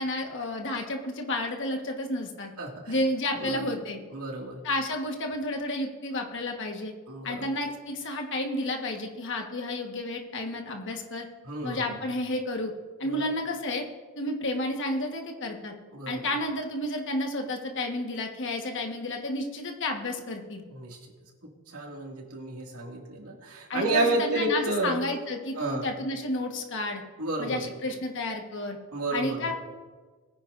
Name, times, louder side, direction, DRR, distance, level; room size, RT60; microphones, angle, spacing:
voice 1, 0.0-2.5 2.9-4.0 4.6-6.9 7.2-11.3 11.6-12.7 13.0-13.9 14.2-15.7 16.1-20.6 23.7-27.0 27.4-28.8 29.1-29.5, left 1 dB, 55° left, 3 dB, 1.4 m, -31 dB
voice 2, 2.6-3.0 3.3-3.7 4.1-4.6 7.1-7.5 11.4-12.0 13.0-13.3 15.9-16.2 20.7-21.0 21.7-25.0 25.6-25.9 27.2-27.7 28.9-29.5, right 2 dB, 85° right, 0 dB, 2.2 m, -31 dB
21.0 x 9.8 x 2.6 m, 1.4 s
head